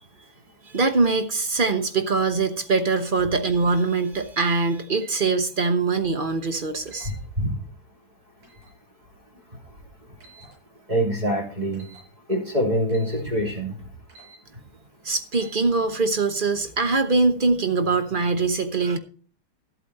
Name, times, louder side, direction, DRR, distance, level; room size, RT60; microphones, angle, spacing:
voice 1, 0.6-7.1 15.0-19.0, right 3 dB, 40° right, 7 dB, 0.7 m, -23 dB
sound 1, 4.9-5.2 6.9-7.2 8.4-8.7 10.2-10.5 11.7-12.1 12.9-13.2 14.1-14.4 15.3-15.6, right 3 dB, 90° right, 7.3 m, -49 dB
voice 2, 7.1-7.6 10.9-11.9 12.3-13.9, equal, 20° right, -1 dB, 3.4 m, -25 dB
14.0 x 8.3 x 4.2 m, 0.41 s
omnidirectional pair, 2.4 m